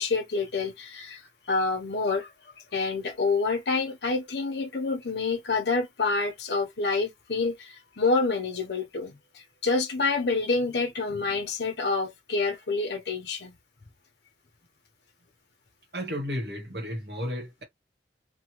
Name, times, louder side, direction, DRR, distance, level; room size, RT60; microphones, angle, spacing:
voice 1, 0.0-2.3 2.7-13.6, left 3 dB, 75° left, 0.8 m, -28 dB
voice 2, 15.9-17.6, equal, 65° right, 1.2 m, -33 dB
3.0 x 2.3 x 3.0 m
head